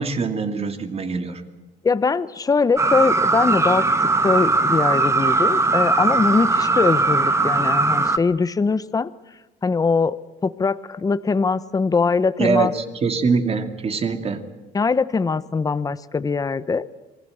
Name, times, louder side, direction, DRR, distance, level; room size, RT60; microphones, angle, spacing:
voice 1, 0.0-1.4 12.4-14.4, right 4 dB, 35° right, 7 dB, 2.5 m, -23 dB
voice 2, 1.8-9.1 9.6-10.2 10.4-12.7 14.7-16.9, left 4 dB, 20° left, 15 dB, 0.9 m, -21 dB
sound 1, 2.8-8.2, right 3 dB, 15° right, 1.4 m, -19 dB
26.0 x 20.0 x 7.9 m, 1.1 s
cardioid pair, 110°, 17 cm